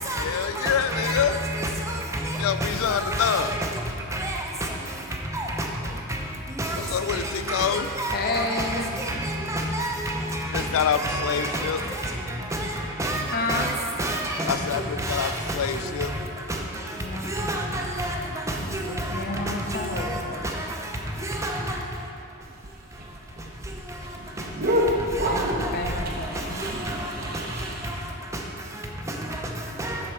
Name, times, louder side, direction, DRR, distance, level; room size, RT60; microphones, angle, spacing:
voice 1, 0.2-1.4 2.4-3.5 6.8-7.9 10.5-11.8 14.4-16.1, left 8 dB, 70° left, 12 dB, 0.3 m, -26 dB
voice 2, 0.9-1.2 1.5-2.0 2.9-3.6 4.1-4.4 5.3-5.5 6.6-6.8 7.1-7.2 7.5-8.8 9.1-9.9 10.3-10.6 10.9-11.7 12.5-12.7 13.0-13.2 13.5-13.7 14.0-14.4 15.0-15.3 17.3-18.2 19.0-19.2 20.0-20.2 21.3-21.7 25.6-25.7 26.9-27.0 29.8-30.0, right 1 dB, 15° right, 0 dB, 0.7 m, -28 dB
voice 3, 8.1-8.9 13.3-13.7 17.0-17.5 18.6-20.4 25.2-26.6, left 2 dB, 45° left, 2 dB, 0.8 m, -31 dB
sound 1, 22.4-28.1, equal, 45° right, 0.8 m, -29 dB
7.7 x 6.6 x 4.7 m, 2.7 s
head